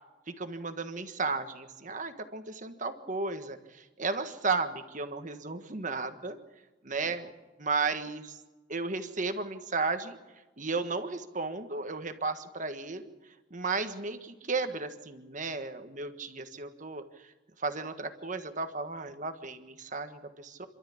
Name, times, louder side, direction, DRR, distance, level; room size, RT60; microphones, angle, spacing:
voice 1, 0.3-6.4 6.8-7.3 7.6-8.4 8.7-10.2 10.6-20.7, right 4 dB, 40° right, 8 dB, 1.5 m, -34 dB
28.0 x 12.5 x 8.6 m, 1.2 s
head